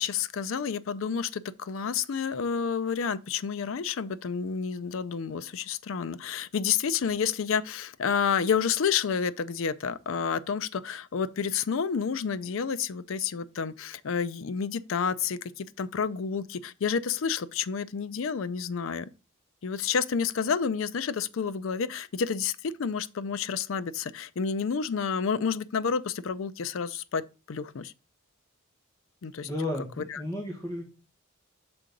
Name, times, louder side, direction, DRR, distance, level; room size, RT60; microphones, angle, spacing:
voice 1, 0.0-19.1 19.6-27.2 27.5-27.9 29.2-29.5 30.0-30.2, left 6 dB, 65° left, 0.4 m, -30 dB
voice 2, 29.4-30.8, left 1 dB, 15° left, 1.3 m, -33 dB
6.1 x 3.8 x 5.1 m
head